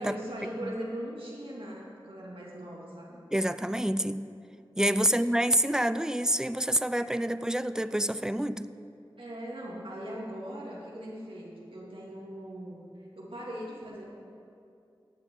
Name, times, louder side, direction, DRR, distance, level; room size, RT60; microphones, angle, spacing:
voice 1, 0.0-3.2 5.1-5.2 9.2-14.0, equal, 70° right, -4 dB, 2.4 m, -40 dB
voice 2, 3.3-4.2 4.8-8.7, right 1 dB, 5° right, 13 dB, 0.4 m, -27 dB
14.0 x 8.8 x 3.8 m, 2.5 s
cardioid pair, 40°, 9 cm